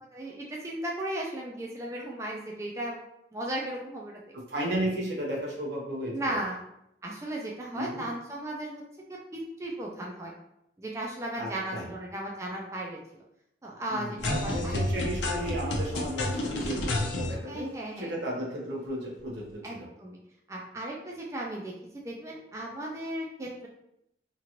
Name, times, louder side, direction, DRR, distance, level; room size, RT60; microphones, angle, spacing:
voice 1, 0.1-3.0 3.3-4.2 6.1-6.6 7.0-8.8 9.1-10.3 10.8-13.0 13.6-14.7 17.5-18.1 19.6-20.2 20.5-21.7 22.0-23.7, right 1 dB, 15° right, -2 dB, 0.3 m, -36 dB
voice 2, 4.3-6.4 7.7-8.0 11.4-11.9 13.9-17.7 18.0-19.9, equal, 75° right, -3 dB, 0.8 m, -34 dB
sound 1, 14.2-17.3, left 1 dB, 90° left, 0.6 m, -30 dB
2.9 x 2.5 x 2.8 m, 0.78 s
head